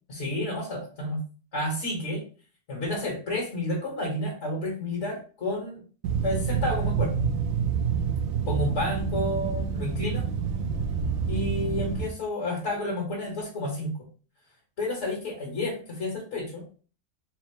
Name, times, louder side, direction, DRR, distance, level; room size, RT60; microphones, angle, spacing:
voice 1, 0.1-1.2 1.5-2.3 2.7-5.8 6.2-7.1 8.5-10.2 11.3-14.0 14.8-16.6, left 1 dB, 60° left, -2 dB, 1.5 m, -30 dB
sound 1, 6.0-12.1, right 6 dB, 70° right, 0.9 m, -27 dB
4.3 x 2.0 x 4.4 m, 0.38 s
omnidirectional pair, 1.4 m